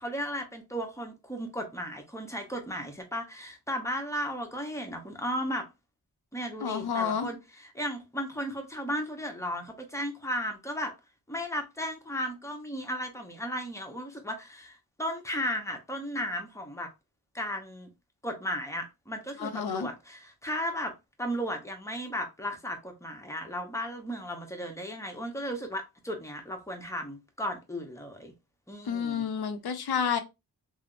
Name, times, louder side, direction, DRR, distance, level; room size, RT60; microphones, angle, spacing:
voice 1, 0.0-5.6 6.3-10.9 11.3-16.9 17.3-17.9 18.2-20.9 21.2-28.3 28.7-29.2, equal, 10° left, 0.8 m, -35 dB
voice 2, 6.6-7.3 19.4-19.9 28.8-30.2, left 7 dB, 80° left, 0.6 m, -30 dB
3.3 x 2.0 x 2.4 m
wide cardioid pair, 75°, 37 cm